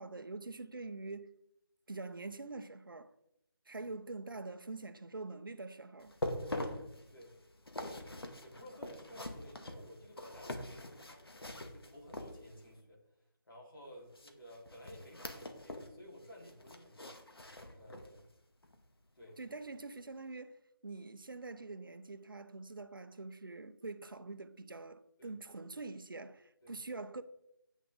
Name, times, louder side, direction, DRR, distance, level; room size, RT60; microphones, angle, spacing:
voice 1, 0.0-1.3 1.9-3.1 3.7-6.1 19.4-27.2, right 3 dB, 65° right, 0.8 m, -45 dB
sound 1, 6.0-12.7 14.1-16.0 16.2-18.2 18.6-18.8 19.3-19.4, left 1 dB, 90° left, 1.7 m, -44 dB
voice 2, 6.7-7.3 7.8-11.4 11.7-17.2 17.7-18.4 19.1-19.4 25.2-25.4 26.6-26.8, equal, 65° left, 3.8 m, -54 dB
9.1 x 8.2 x 3.7 m
figure-of-eight pair, 180°, 12 cm